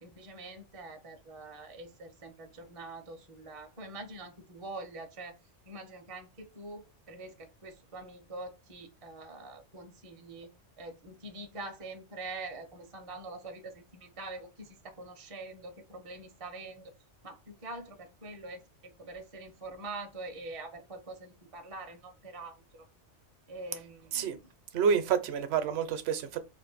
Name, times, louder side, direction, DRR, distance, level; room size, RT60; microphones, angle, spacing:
voice 1, 0.0-5.4 5.6-10.5 10.8-16.9 17.2-22.9 23.5-24.5, right 2 dB, 40° right, 0.5 m, -45 dB
voice 2, 24.7-26.4, right 7 dB, 65° right, 0.8 m, -28 dB
2.5 x 2.5 x 3.8 m
omnidirectional pair, 1.2 m